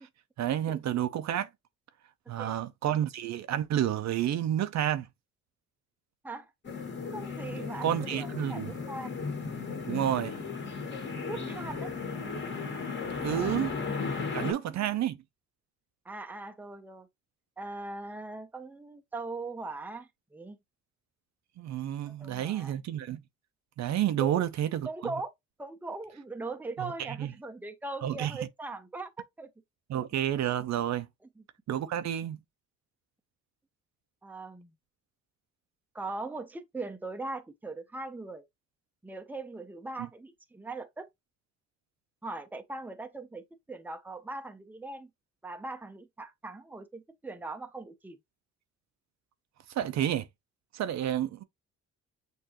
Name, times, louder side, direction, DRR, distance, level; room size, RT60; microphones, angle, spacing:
voice 1, 0.4-1.5 2.3-5.1 7.8-8.7 9.9-10.4 13.2-13.7 14.0-15.2 21.6-23.2 23.8-24.9 26.8-27.3 28.0-28.4 29.9-31.1 31.7-32.4 49.8-50.3 50.7-51.4, right 11 dB, 65° right, 0.6 m, -30 dB
sound 1, 6.6-14.5, left 4 dB, 35° left, 1.7 m, -35 dB
voice 2, 7.1-9.2 11.2-11.9 13.3-13.6 14.3-14.9 16.1-17.1 17.6-20.6 22.1-22.8 24.2-24.4 24.9-25.3 25.6-29.1 29.4-29.5 34.2-34.7 35.9-38.4 39.0-41.1 42.2-45.1 45.4-48.2, right 3 dB, 5° right, 0.6 m, -40 dB
6.7 x 2.7 x 2.9 m
cardioid pair, 90°, 30 cm